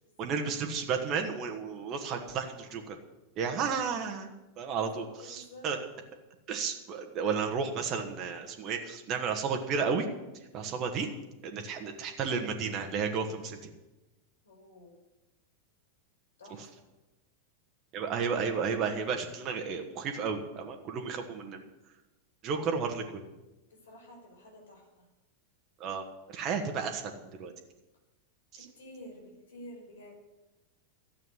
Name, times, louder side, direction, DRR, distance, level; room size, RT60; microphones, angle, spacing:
voice 1, 0.2-3.0 3.4-4.3 4.6-5.8 6.5-10.1 10.5-11.1 11.4-13.6 16.6-16.7 17.9-21.6 22.4-23.2 25.8-26.0 26.3-27.1 27.4-27.5 28.5-28.6, right 5 dB, 35° right, 4 dB, 1.6 m, -32 dB
voice 2, 4.6-5.7 10.6-10.8 14.4-14.9 16.4-16.8 23.8-25.1 28.6-30.1, left 1 dB, 65° left, 1 dB, 5.5 m, -50 dB
12.5 x 8.1 x 10.0 m, 1.0 s
figure-of-eight pair, 90°, 0 cm